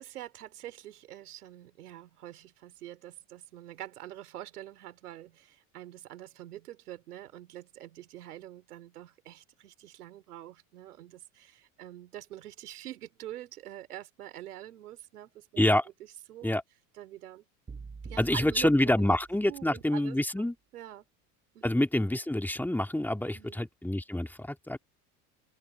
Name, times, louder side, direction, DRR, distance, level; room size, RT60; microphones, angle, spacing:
voice 1, 0.0-15.6 16.0-16.5 16.9-17.5 18.0-18.7 19.0-19.2 19.5-21.1 21.5-21.7 23.3-23.7, right 13 dB, 85° right, 4.8 m, -45 dB
sound 1, 17.7-19.8, right 4 dB, 20° right, 7.9 m, -46 dB
voice 2, 18.2-20.5 21.6-24.8, left 1 dB, 5° left, 2.3 m, -27 dB
open air
hypercardioid pair, 85°, 44 cm